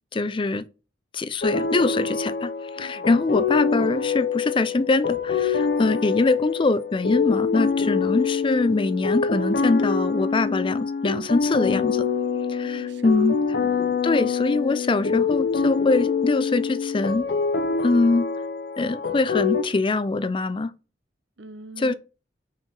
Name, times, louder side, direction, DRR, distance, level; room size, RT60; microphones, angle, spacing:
voice 1, 0.1-0.6 1.1-12.1 12.5-13.4 14.0-17.3 17.8-18.3 18.8-20.7 21.8-21.9, left 3 dB, 30° left, 0.4 m, -23 dB
sound 1, 1.4-19.6, left 5 dB, 60° left, 0.7 m, -25 dB
voice 2, 2.8-3.1 8.0-8.1 12.1-13.3 13.6-14.0 21.4-21.9, right 2 dB, 75° right, 0.7 m, -44 dB
5.6 x 4.5 x 5.3 m
head